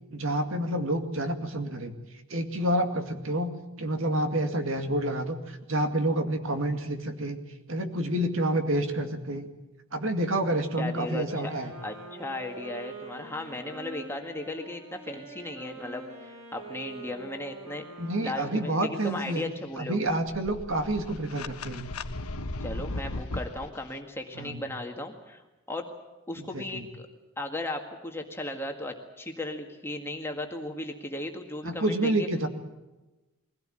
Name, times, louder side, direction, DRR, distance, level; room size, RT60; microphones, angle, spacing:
voice 1, 0.1-1.9 2.3-3.5 3.8-7.4 7.7-9.5 9.9-11.7 18.0-19.4 19.8-21.9 24.4-24.6 26.4-26.8 31.6-32.5, right 1 dB, 60° right, 6 dB, 2.2 m, -28 dB
voice 2, 10.8-11.5 11.8-17.9 18.2-20.0 22.6-25.4 25.7-25.9 26.3-27.1 27.4-32.3, left 2 dB, 10° left, 3 dB, 1.8 m, -36 dB
Wind instrument woodwind instrument, 11.2-19.2, right 2 dB, 90° right, 7.0 m, -45 dB
sound 1, 20.1-23.6, left 2 dB, 85° left, 1.3 m, -36 dB
22.5 x 16.5 x 8.9 m, 1.1 s
head